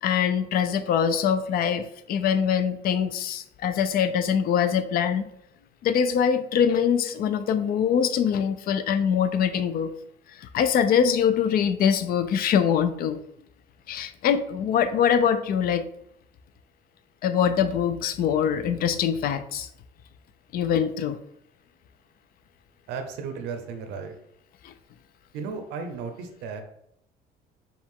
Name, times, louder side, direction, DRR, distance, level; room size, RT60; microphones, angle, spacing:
voice 1, 0.0-5.3 5.8-9.9 10.4-13.2 13.9-15.9 17.2-19.7 20.5-21.2 24.6-24.7, left 8 dB, 60° left, 11 dB, 0.4 m, -23 dB
voice 2, 22.9-24.1 25.3-26.6, right 5 dB, 90° right, 6 dB, 0.6 m, -34 dB
5.0 x 2.4 x 3.5 m, 0.74 s
cardioid pair, 110°, 17 cm